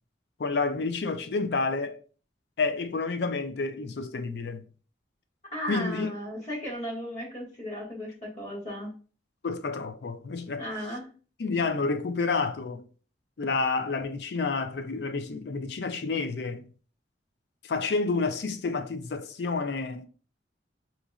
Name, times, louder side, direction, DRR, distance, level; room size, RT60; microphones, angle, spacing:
voice 1, 0.4-2.0 2.6-4.6 5.6-6.1 9.4-10.7 11.4-12.8 13.4-16.7 17.6-20.1, left 4 dB, 70° left, 0.4 m, -29 dB
voice 2, 5.5-8.9 10.6-11.1, equal, 40° left, 1.7 m, -35 dB
3.8 x 3.1 x 2.3 m
head